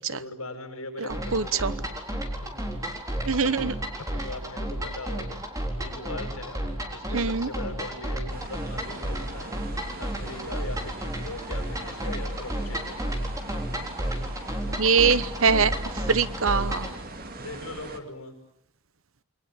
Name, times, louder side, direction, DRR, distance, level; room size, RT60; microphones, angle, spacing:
voice 1, 0.0-1.7 2.4-2.5 3.4-5.3 5.8-6.6 6.9-9.5 10.0-13.0 17.4-18.3, left 2 dB, 80° left, 4 dB, 7.9 m, -40 dB
voice 2, 1.0-1.7 3.2-3.7 7.1-7.5 14.7-15.7 16.1-16.9, right 5 dB, 70° right, 15 dB, 1.1 m, -23 dB
sound 1, 1.1-17.0, right 1 dB, 15° right, 3.8 m, -32 dB
sound 2, 8.3-18.0, right 2 dB, 45° right, 2.6 m, -42 dB
29.0 x 22.5 x 8.9 m, 0.73 s
head